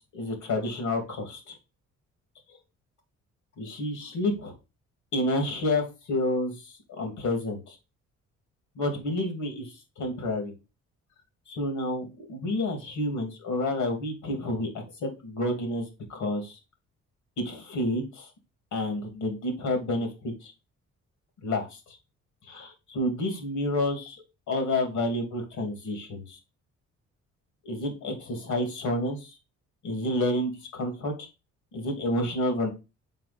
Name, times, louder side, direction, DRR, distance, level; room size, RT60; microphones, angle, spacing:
voice 1, 0.1-1.5 3.6-4.5 5.1-7.8 8.8-10.5 11.5-16.6 17.4-18.3 18.7-20.5 21.4-21.8 22.5-24.2 24.5-26.4 27.6-29.3 29.8-31.3 31.7-32.7, left 1 dB, 75° left, 4 dB, 2.8 m, -29 dB
5.6 x 4.5 x 4.3 m, 0.27 s
cardioid pair, 90°, 30 cm